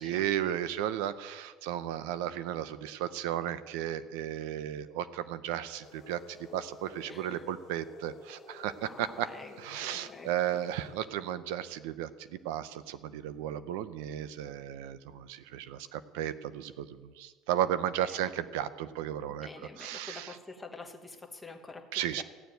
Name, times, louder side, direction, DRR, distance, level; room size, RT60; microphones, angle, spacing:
voice 1, 0.0-9.3 9.6-19.5 19.8-20.3 21.9-22.2, right 11 dB, 90° right, 14 dB, 0.7 m, -34 dB
sound 1, 5.8-11.4, left 5 dB, 30° left, 1.4 m, -52 dB
voice 2, 7.1-7.5 8.8-10.6 18.2-18.3 19.3-22.2, left 3 dB, 10° left, 2 dB, 1.1 m, -47 dB
15.0 x 7.0 x 9.2 m, 1.5 s
cardioid pair, 170°, 0 cm